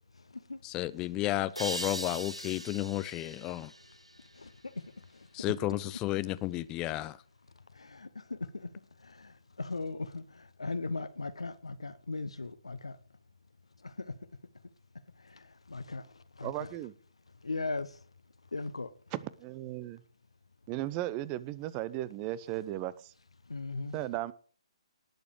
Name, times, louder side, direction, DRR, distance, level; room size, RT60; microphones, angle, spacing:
voice 1, 0.6-3.7 5.3-7.2, left 16 dB, 20° left, 0.6 m, -32 dB
sound 1, 1.5-4.9, right 1 dB, 90° right, 1.4 m, -41 dB
voice 2, 4.8-5.3 7.7-8.7 9.0-13.0 13.8-14.2 15.2-16.7 17.4-18.0 18.5-18.9 23.5-24.0, left 3 dB, 70° left, 0.9 m, -38 dB
voice 3, 16.4-16.9 19.1-20.0 20.7-23.1 23.9-24.3, right 15 dB, 25° right, 0.7 m, -36 dB
18.5 x 6.9 x 4.9 m
figure-of-eight pair, 130°, 3 cm